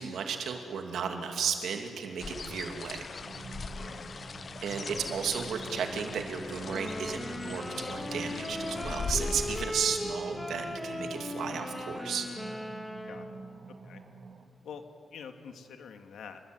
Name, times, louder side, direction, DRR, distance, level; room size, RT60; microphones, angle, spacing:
voice 1, 0.0-3.1 4.6-12.3, right 6 dB, 85° right, 4 dB, 3.0 m, -34 dB
sound 1, 2.2-9.7, left 4 dB, 40° left, 1.2 m, -39 dB
sound 2, 3.2-14.4, right 4 dB, 55° right, 2.6 m, -47 dB
sound 3, 6.6-13.5, left 1 dB, 5° left, 2.9 m, -38 dB
voice 2, 15.1-16.4, left 7 dB, 90° left, 6 dB, 2.3 m, -45 dB
29.0 x 21.5 x 9.2 m, 2.4 s
wide cardioid pair, 130°, 0 cm